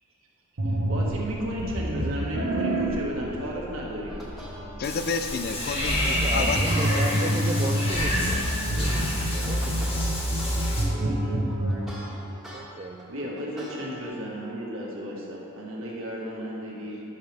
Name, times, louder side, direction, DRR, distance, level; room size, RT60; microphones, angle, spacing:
sound 1, 0.6-11.8, right 1 dB, 80° right, 1.4 m, -28 dB
voice 1, 0.9-4.2 11.0-11.3 13.1-17.0, equal, 60° right, -3 dB, 1.7 m, -34 dB
sound 2, 4.1-6.6 7.0-12.6 13.0-14.1, equal, ahead, 1.7 m, -43 dB
voice 2, 4.8-7.3, left 4 dB, 45° left, 8 dB, 0.4 m, -31 dB
Water / Bathtub (filling or washing), 4.8-10.8, left 1 dB, 25° left, 1.3 m, -30 dB
voice 3, 5.9-8.9 9.3-9.9 12.5-13.1 13.7-13.8, right 3 dB, 30° right, 1 dB, 0.3 m, -35 dB
13.0 x 6.7 x 3.5 m, 2.8 s
head